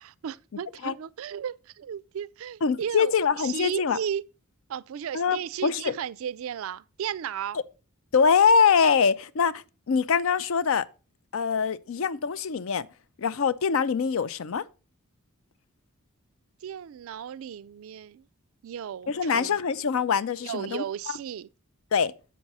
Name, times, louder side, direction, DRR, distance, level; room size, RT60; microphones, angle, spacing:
voice 1, 0.0-4.2 4.7-7.6 16.6-18.3 18.6-19.6 20.4-21.5, right 8 dB, 65° right, 0.3 m, -35 dB
voice 2, 2.6-4.0 5.1-6.0 8.1-10.9 11.3-12.9 13.2-14.6 19.1-21.2 21.9-22.1, left 6 dB, 65° left, 0.4 m, -24 dB
7.1 x 6.0 x 4.1 m
head